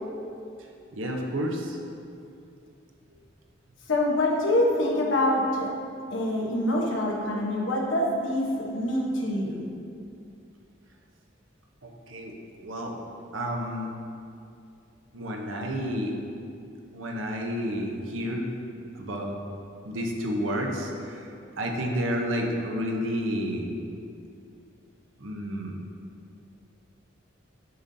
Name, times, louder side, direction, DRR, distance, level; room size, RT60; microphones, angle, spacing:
voice 1, 0.9-1.8 11.8-12.3 12.6-13.0 13.3-13.9 15.1-16.2 16.9-18.5 18.9-19.4 19.8-21.3 21.6-23.7 25.2-25.7, equal, 80° right, 1 dB, 0.8 m, -30 dB
voice 2, 3.9-5.7 6.1-9.6, left 1 dB, 75° left, -1 dB, 1.0 m, -25 dB
7.8 x 5.4 x 2.7 m, 2.5 s
head